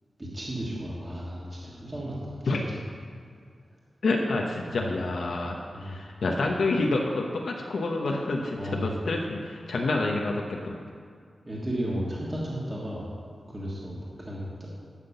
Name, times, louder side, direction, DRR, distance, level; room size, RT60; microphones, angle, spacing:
voice 1, 0.2-2.5 4.6-4.8 5.7-6.0 8.6-8.9 11.4-13.1 13.5-14.7, equal, 15° right, -6 dB, 1.6 m, -34 dB
voice 2, 4.0-10.8, left 2 dB, 70° left, 0 dB, 1.0 m, -28 dB
12.0 x 6.0 x 6.9 m, 2.2 s
wide cardioid pair, 170°, 0 cm